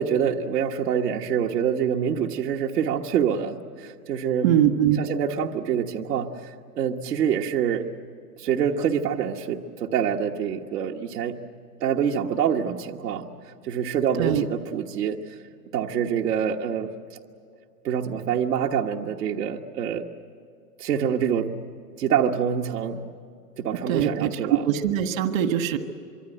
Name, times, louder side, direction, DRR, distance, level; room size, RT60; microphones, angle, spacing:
voice 1, 0.0-4.5 5.0-7.8 8.4-11.4 11.8-13.3 13.6-15.2 15.7-16.9 17.8-20.0 20.8-21.5 22.0-23.0 23.6-24.6, right 8 dB, 75° right, 1 dB, 1.5 m, -26 dB
voice 2, 4.4-5.0 14.2-14.4 23.9-25.8, right 10 dB, 55° right, 8 dB, 1.7 m, -22 dB
25.0 x 24.0 x 8.0 m, 2.5 s
hypercardioid pair, 135°, 47 cm